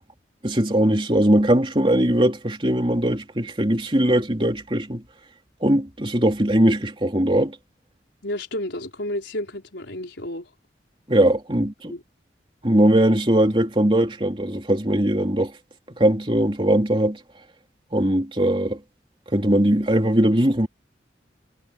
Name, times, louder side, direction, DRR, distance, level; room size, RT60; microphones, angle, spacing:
voice 1, 0.4-5.0 5.6-7.5 11.1-11.9 12.6-15.5 15.9-17.2 17.9-18.8 19.3-20.7, right 1 dB, 30° right, 3.4 m, -20 dB
voice 2, 8.2-10.5 11.9-12.0, left 1 dB, 85° left, 4.6 m, -31 dB
head